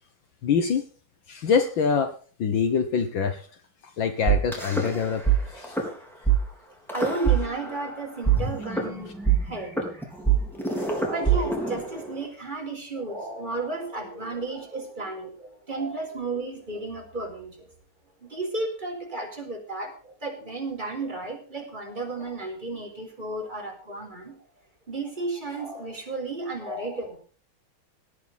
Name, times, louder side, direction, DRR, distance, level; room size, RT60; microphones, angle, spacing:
voice 1, 0.4-0.8 1.3-2.1 2.4-3.4 4.0-5.2 5.5-5.8 10.8-10.9, left 6 dB, 65° left, 8 dB, 2.0 m, -24 dB
sound 1, 4.3-5.4 5.6-5.9 6.3-6.4 6.9-7.9 8.3-12.3, right 7 dB, ahead, 3.8 m, -24 dB
voice 2, 6.9-17.7 18.2-24.4 24.9-27.2, right 3 dB, 20° right, 0 dB, 4.4 m, -33 dB
18.0 x 11.0 x 4.1 m, 0.40 s
omnidirectional pair, 2.3 m